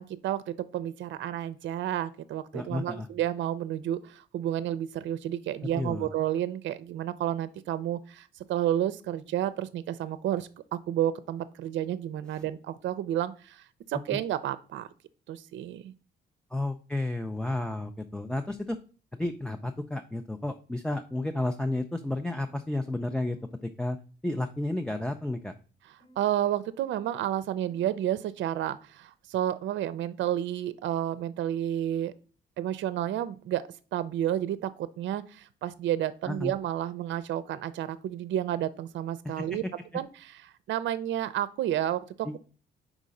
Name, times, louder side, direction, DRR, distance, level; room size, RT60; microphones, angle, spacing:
voice 1, 0.0-14.9 15.3-15.9 26.2-32.1 32.6-33.6 33.9-39.6 39.9-40.4 40.7-42.4, right 11 dB, 70° right, 15 dB, 0.5 m, -31 dB
voice 2, 2.5-3.1 5.7-6.1 16.5-18.8 19.1-24.0 24.2-25.5 36.2-36.5 39.4-39.6 42.2-42.4, left 2 dB, 5° left, 7 dB, 0.4 m, -32 dB
sound 1, 21.6-21.8 22.4-22.6 23.3-23.5 24.2-24.5 25.2-25.4 26.0-26.2 26.9-27.1 27.7-28.0, right 1 dB, 65° left, 3.1 m, -58 dB
4.9 x 3.7 x 5.2 m, 0.39 s
cardioid pair, 90°, 20 cm